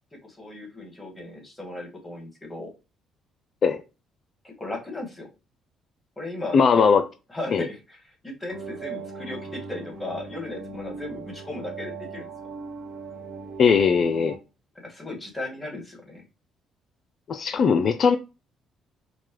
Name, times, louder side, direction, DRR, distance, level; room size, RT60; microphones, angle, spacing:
voice 1, 0.2-2.7 4.4-5.3 6.2-6.8 7.3-12.3 14.8-16.2, left 2 dB, 15° left, 1.9 m, -36 dB
voice 2, 6.5-7.1 7.5-7.7 13.6-14.4 17.3-18.2, left 6 dB, 55° left, 0.3 m, -19 dB
sound 1, 8.5-14.4, right 4 dB, 65° right, 1.2 m, -39 dB
4.4 x 2.2 x 3.1 m
supercardioid pair, 60°, 0 cm